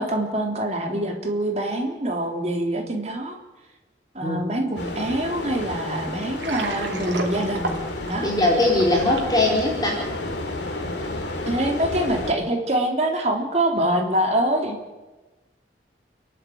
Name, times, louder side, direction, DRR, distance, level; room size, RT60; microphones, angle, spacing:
voice 1, 0.0-3.4 4.2-7.8 8.0-8.3 11.4-14.8, right 1 dB, 40° right, 2 dB, 3.4 m, -25 dB
sound 1, 4.8-12.3, left 2 dB, 75° left, 3.2 m, -31 dB
Water, 6.2-9.4, right 2 dB, 85° right, 2.9 m, -32 dB
voice 2, 8.2-10.0, left 2 dB, 20° left, -2 dB, 4.6 m, -20 dB
29.5 x 11.5 x 8.7 m, 1.1 s
head